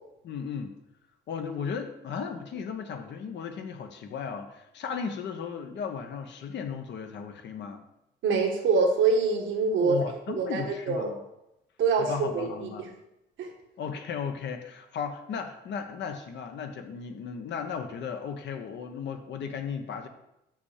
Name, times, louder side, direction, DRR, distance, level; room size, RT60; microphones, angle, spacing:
voice 1, 0.2-0.8 1.3-7.8 9.8-11.2 12.0-12.8 13.8-20.1, left 6 dB, 70° left, 5 dB, 1.1 m, -35 dB
voice 2, 8.2-9.9 10.3-11.1 11.8-12.9 13.4-13.5, right 4 dB, 80° right, 1 dB, 1.4 m, -25 dB
6.0 x 5.6 x 6.6 m, 0.86 s
cardioid pair, 120°, 19 cm